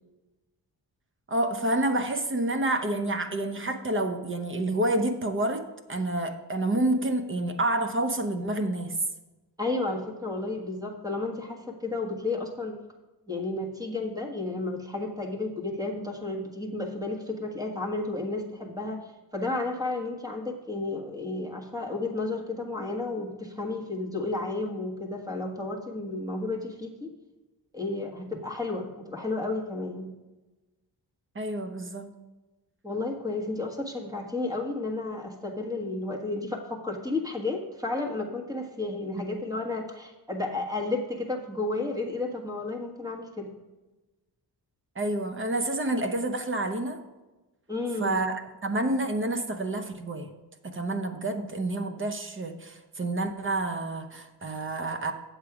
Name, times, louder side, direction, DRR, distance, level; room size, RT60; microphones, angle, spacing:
voice 1, 1.3-5.6 5.9-9.0 31.3-32.1 45.0-47.0 48.0-50.3 50.6-55.1, right 1 dB, 30° right, 7 dB, 0.8 m, -28 dB
voice 2, 9.6-12.8 13.3-19.0 19.3-27.1 27.7-30.1 32.8-43.5 47.7-48.3, left 2 dB, 10° right, 2 dB, 1.5 m, -32 dB
8.6 x 7.5 x 4.8 m, 1.1 s
wide cardioid pair, 135°, 41 cm